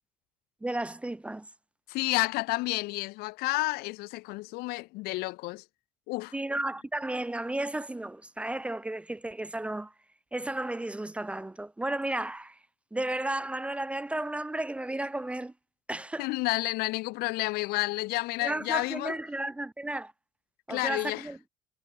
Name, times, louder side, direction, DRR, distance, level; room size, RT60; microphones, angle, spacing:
voice 1, 0.6-1.5 6.3-9.9 10.3-12.6 12.9-15.5 15.9-16.3 18.4-20.1 20.7-21.4, right 1 dB, 5° right, 0.7 m, -33 dB
voice 2, 1.9-5.6 6.1-6.4 16.2-19.2 20.7-21.3, left 22 dB, 75° left, 0.8 m, -30 dB
cardioid pair, 135°, 16 cm